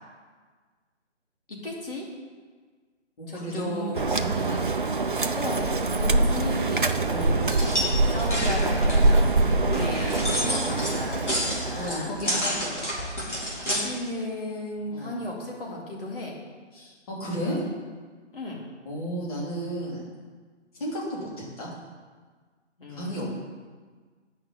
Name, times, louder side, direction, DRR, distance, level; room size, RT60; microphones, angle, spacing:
voice 1, 1.5-2.1 3.3-4.1 5.3-12.2 13.6-16.3 18.3-18.6 22.8-23.3, left 2 dB, 50° left, -3 dB, 2.8 m, -35 dB
voice 2, 3.2-4.6 7.1-7.4 10.6-10.9 11.7-13.1 14.9-15.2 16.7-17.6 18.8-20.0 20.7-21.7 22.9-23.3, equal, 30° left, -5 dB, 2.9 m, -33 dB
sound 1, 3.9-11.9, right 2 dB, 45° right, 0.5 m, -24 dB
sound 2, 7.5-13.8, equal, 75° left, 3.5 m, -30 dB
9.9 x 6.0 x 6.7 m, 1.5 s
figure-of-eight pair, 150°, 36 cm